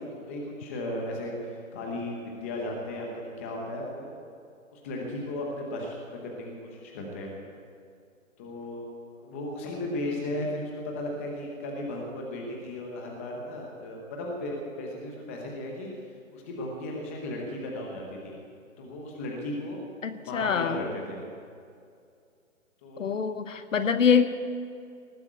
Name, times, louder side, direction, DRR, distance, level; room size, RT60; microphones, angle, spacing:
voice 1, 0.0-4.1 4.7-7.3 8.4-8.8 9.1-15.9 16.3-18.4 18.8-19.8 20.3-21.2 22.8-23.2, left 1 dB, 10° left, 0 dB, 0.8 m, -35 dB
voice 2, 20.0-20.8 23.0-24.3, left 6 dB, 65° left, 11 dB, 1.1 m, -24 dB
18.5 x 8.1 x 8.0 m, 2.3 s
hypercardioid pair, 160°, 41 cm